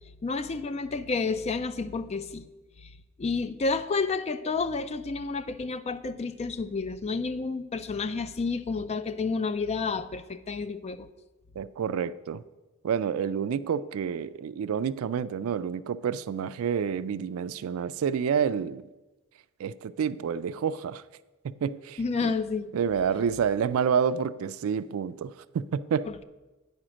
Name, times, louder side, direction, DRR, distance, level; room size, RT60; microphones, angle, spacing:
voice 1, 0.2-2.5 2.8-2.9 3.2-11.1 22.0-22.7 26.1-26.2, left 4 dB, 30° left, 0.4 m, -30 dB
voice 2, 11.6-12.4 12.8-18.9 19.6-21.0 21.4-22.3 22.7-26.1, right 7 dB, 75° right, 0.3 m, -29 dB
8.8 x 4.9 x 6.2 m
head